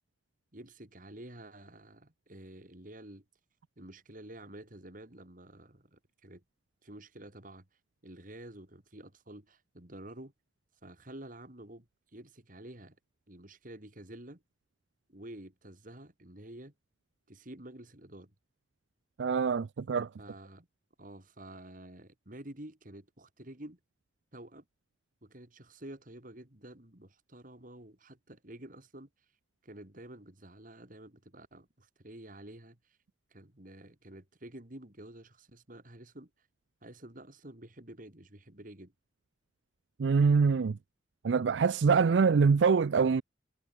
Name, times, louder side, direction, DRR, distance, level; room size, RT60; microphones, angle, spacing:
voice 1, 0.5-3.2 3.8-6.4 6.8-7.7 8.0-10.3 10.8-11.9 12.1-13.0 13.3-14.4 15.1-16.7 17.3-18.3 20.2-20.7 21.0-23.8 24.3-24.6 25.2-29.1 29.6-32.8 33.3-36.3 36.8-38.9, right 1 dB, 50° right, 3.0 m, -49 dB
voice 2, 19.2-20.1 40.0-40.8 41.2-43.2, right 5 dB, 80° right, 0.4 m, -24 dB
head